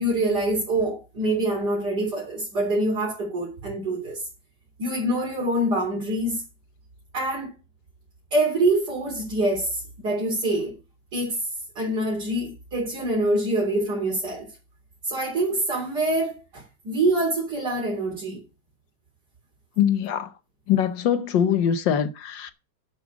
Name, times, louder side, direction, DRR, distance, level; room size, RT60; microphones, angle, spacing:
voice 1, 0.0-4.2 4.8-6.4 7.1-7.5 8.3-10.8 11.1-11.5 11.8-14.5 15.0-18.4, right 1 dB, 60° right, 4.3 m, -25 dB
voice 2, 19.8-20.3 20.7-22.5, left 9 dB, 75° left, 1.6 m, -22 dB
11.5 x 7.6 x 6.0 m
omnidirectional pair, 2.1 m